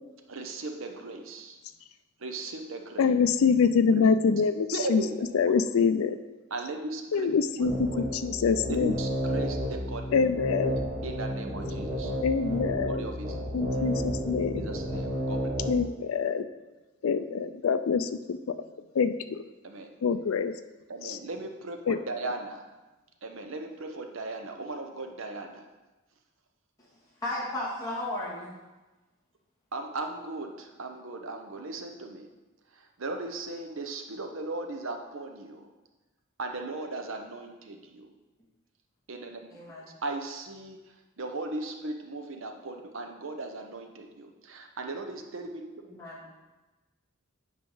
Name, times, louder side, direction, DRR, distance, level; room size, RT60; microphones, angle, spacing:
voice 1, 0.3-1.6 2.2-3.1 3.9-4.1 4.7-5.5 6.5-8.1 8.6-10.2 11.0-12.1 12.9-13.4 14.6-15.6 19.6-19.9 20.9-22.6 23.2-25.7 29.7-32.3 32.7-35.7 36.4-38.1 39.1-39.4 40.0-40.8 41.2-46.0, right 2 dB, 75° right, 4 dB, 0.8 m, -37 dB
voice 2, 3.0-5.0 5.3-6.2 7.1-8.9 10.1-10.7 12.2-13.0 13.5-14.7 15.7-16.5 17.0-18.5 18.9-19.4 20.0-20.5 21.0-21.2 21.9-22.0, left 5 dB, 85° left, 11 dB, 0.4 m, -25 dB
sound 1, 7.6-15.7, equal, 20° right, 1.8 m, -32 dB
voice 3, 27.2-28.5 39.5-39.9 45.8-46.3, left 1 dB, 15° left, -8 dB, 2.1 m, -35 dB
9.1 x 5.0 x 3.9 m, 1.1 s
head